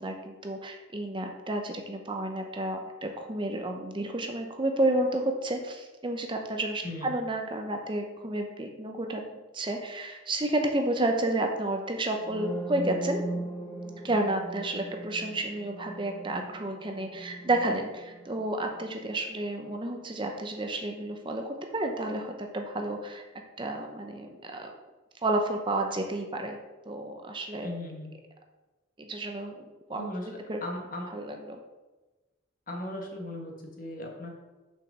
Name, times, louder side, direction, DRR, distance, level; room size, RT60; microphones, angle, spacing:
voice 1, 0.0-9.2 9.5-13.2 14.0-23.2 23.6-24.7 25.2-26.6 26.9-27.8 29.0-29.5 29.9-30.0 30.5-30.6 31.1-31.6, right 1 dB, 25° right, 4 dB, 0.6 m, -31 dB
sound 1, 12.2-20.0, right 2 dB, 20° left, 1.7 m, -39 dB
voice 2, 27.6-28.1 29.9-30.3 30.6-31.1 32.7-34.3, left 1 dB, 45° left, 1 dB, 1.4 m, -37 dB
6.3 x 5.0 x 6.1 m, 1.2 s
head